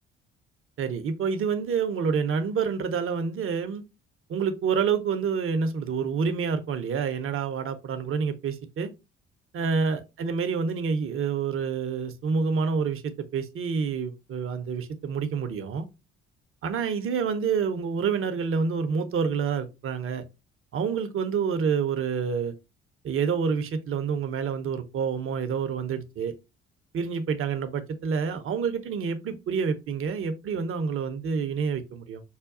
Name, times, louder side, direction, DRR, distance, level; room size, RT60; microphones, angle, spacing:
voice 1, 0.8-3.8 4.3-8.9 9.5-15.9 16.6-20.2 20.7-22.5 23.0-26.3 26.9-32.2, right 6 dB, 35° right, 0.6 m, -28 dB
5.6 x 2.2 x 2.5 m
figure-of-eight pair, 45°, 35 cm